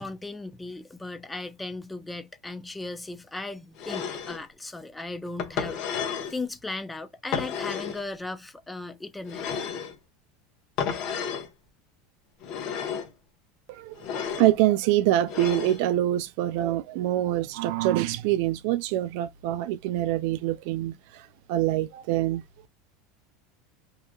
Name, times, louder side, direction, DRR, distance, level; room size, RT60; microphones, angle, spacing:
voice 1, 0.0-9.5, left 2 dB, 10° left, 0.5 m, -37 dB
sound 1, 3.8-4.4 5.4-6.4 7.3-8.0 9.3-10.0 10.8-11.5 12.4-13.1 14.0-14.5 15.3-15.8, left 7 dB, 50° left, 0.9 m, -32 dB
voice 2, 13.7-22.4, right 14 dB, 65° right, 0.3 m, -25 dB
2.7 x 2.3 x 2.2 m
supercardioid pair, 125°, 0 cm